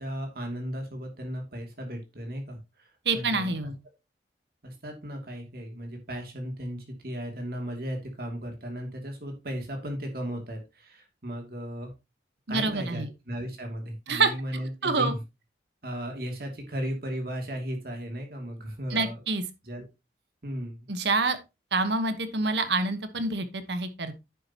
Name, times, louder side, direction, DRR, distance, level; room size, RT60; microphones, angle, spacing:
voice 1, 0.0-3.7 4.6-11.9 12.5-15.2 15.8-19.2 19.6-19.9 20.4-20.9, equal, 55° right, 2.6 m, -36 dB
voice 2, 3.0-3.8 12.5-13.1 14.1-15.1 18.9-19.4 20.9-21.4 21.7-24.2, right 3 dB, 70° right, 1.2 m, -27 dB
10.5 x 7.5 x 2.9 m
head